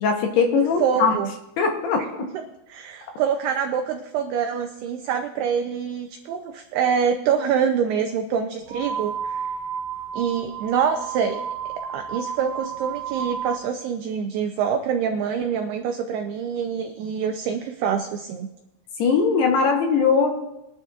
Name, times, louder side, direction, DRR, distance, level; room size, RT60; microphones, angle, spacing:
voice 1, 0.0-1.2 1.6-2.3 19.0-20.3, left 5 dB, 75° left, 3 dB, 2.7 m, -20 dB
voice 2, 0.5-1.3 2.0-2.3 2.7-9.5 10.1-11.4 11.9-18.5, right 7 dB, 85° right, 5 dB, 2.3 m, -25 dB
sound 1, 8.7-13.6, right 6 dB, 35° right, 2.1 m, -32 dB
21.5 x 12.0 x 2.4 m, 0.90 s
omnidirectional pair, 5.5 m